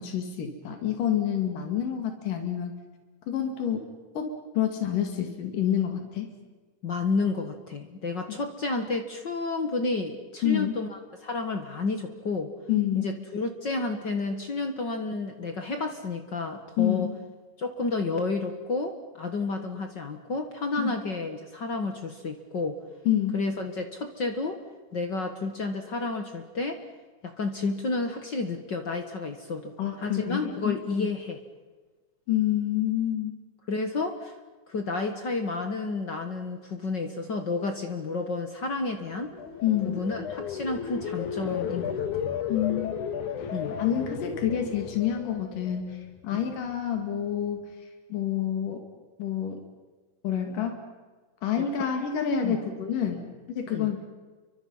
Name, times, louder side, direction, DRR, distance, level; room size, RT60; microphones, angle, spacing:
voice 1, 0.0-2.7 3.3-3.8 4.2-4.3 4.6-6.3 8.3-8.4 10.4-10.7 12.7-13.1 16.8-17.1 20.8-21.0 23.1-23.4 29.8-31.1 32.3-33.4 39.6-40.0 42.5-43.0 43.4-43.5 43.8-47.7 48.1-48.8 49.2-49.6 50.2-50.8 51.4-54.0, left 10 dB, 90° left, 5 dB, 3.9 m, -28 dB
voice 2, 6.8-12.5 12.9-17.1 17.6-22.8 23.3-24.6 24.9-26.8 27.2-29.7 30.0-31.4 33.7-34.3 34.7-39.3 39.8-42.3 43.5-43.7 46.3-46.5 52.4-52.6 53.7-53.9, left 3 dB, 45° left, 6 dB, 1.7 m, -31 dB
sound 1, 39.0-46.2 46.6-47.0, left 7 dB, 70° left, 2.8 m, -34 dB
30.0 x 24.0 x 5.6 m, 1.3 s
omnidirectional pair, 3.7 m